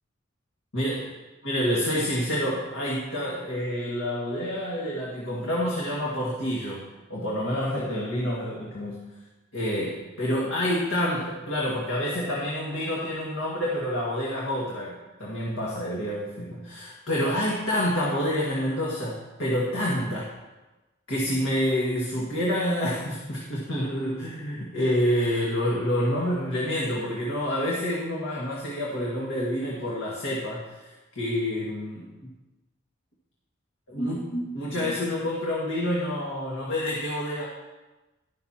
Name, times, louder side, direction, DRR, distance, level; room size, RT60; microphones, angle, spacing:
voice 1, 0.7-1.0 1.4-6.8 7.1-9.0 9.5-14.9 15.2-20.3 21.1-30.9 31.2-32.3 33.9-37.5, equal, 70° left, -5 dB, 1.9 m, -28 dB
12.0 x 11.0 x 2.9 m, 1.1 s
head